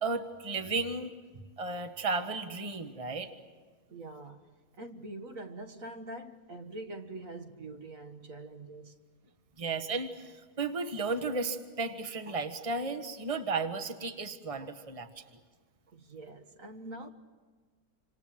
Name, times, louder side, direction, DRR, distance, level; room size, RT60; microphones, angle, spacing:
voice 1, 0.0-1.1 1.6-3.3 9.6-15.2, right 3 dB, 20° right, 1.5 m, -34 dB
voice 2, 3.9-8.9 15.9-17.1, right 2 dB, 60° right, 1.9 m, -44 dB
28.0 x 26.5 x 7.7 m
omnidirectional pair, 1.7 m